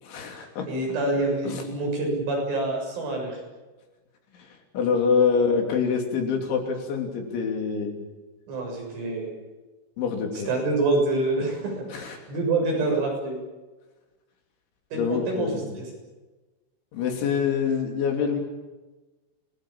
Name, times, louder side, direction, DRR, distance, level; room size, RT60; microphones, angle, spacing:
voice 1, 0.0-0.7 1.5-1.6 4.3-8.1 10.0-10.5 11.9-12.2 14.9-15.8 16.9-18.4, left 6 dB, 75° left, 3 dB, 5.5 m, -26 dB
voice 2, 0.7-3.4 8.5-9.3 10.5-13.4 14.9-15.9, right 2 dB, 80° right, 0 dB, 9.8 m, -26 dB
28.0 x 19.5 x 8.8 m, 1.2 s
omnidirectional pair, 5.5 m